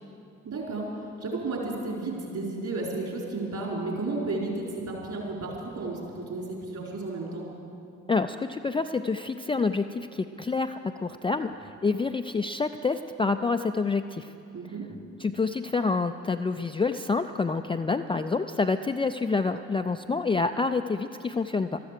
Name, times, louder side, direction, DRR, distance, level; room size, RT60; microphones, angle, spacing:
voice 1, 0.4-0.8 1.2-7.5 14.5-14.8, right 3 dB, 50° right, -2 dB, 4.4 m, -33 dB
voice 2, 8.1-14.3 15.2-21.8, left 4 dB, 15° left, 7 dB, 0.4 m, -27 dB
13.5 x 13.0 x 6.8 m, 2.5 s
figure-of-eight pair, 40°, 37 cm